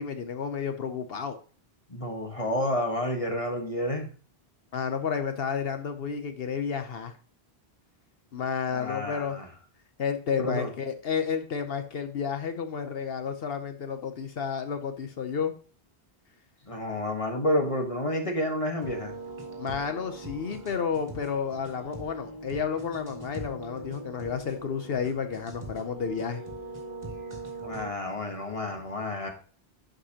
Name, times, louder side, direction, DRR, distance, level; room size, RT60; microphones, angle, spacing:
voice 1, 0.0-1.4 4.7-7.1 8.3-9.4 10.0-15.5 19.6-26.4, left 6 dB, 70° left, 7 dB, 1.0 m, -31 dB
voice 2, 1.9-4.1 8.7-9.5 10.4-10.7 16.7-19.1 27.6-29.3, left 1 dB, 35° left, 3 dB, 1.4 m, -30 dB
sound 1, 18.8-27.9, right 2 dB, 40° right, 2.5 m, -41 dB
11.0 x 5.2 x 2.9 m, 0.38 s
omnidirectional pair, 1.1 m